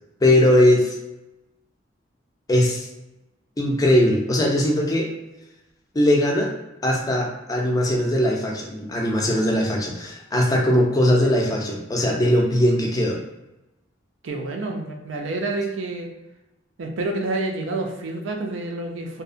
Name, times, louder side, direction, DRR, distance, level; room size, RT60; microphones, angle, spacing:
voice 1, 0.2-1.0 2.5-2.9 3.6-5.1 5.9-6.5 6.8-13.2, left 1 dB, 20° left, 0 dB, 0.4 m, -20 dB
voice 2, 14.2-16.1 16.8-19.2, right 2 dB, 85° right, 2 dB, 0.4 m, -28 dB
2.7 x 2.0 x 2.5 m, 0.98 s
head